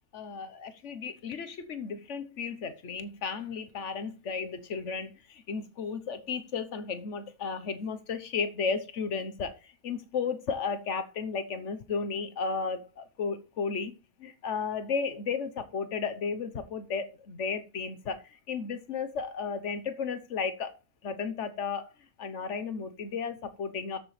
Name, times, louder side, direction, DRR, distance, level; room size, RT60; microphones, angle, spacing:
voice 1, 0.1-13.9 14.2-20.8 21.0-21.9 22.2-24.0, left 5 dB, 55° left, 10 dB, 1.3 m, -34 dB
13.5 x 6.9 x 3.3 m, 0.30 s
omnidirectional pair, 1.6 m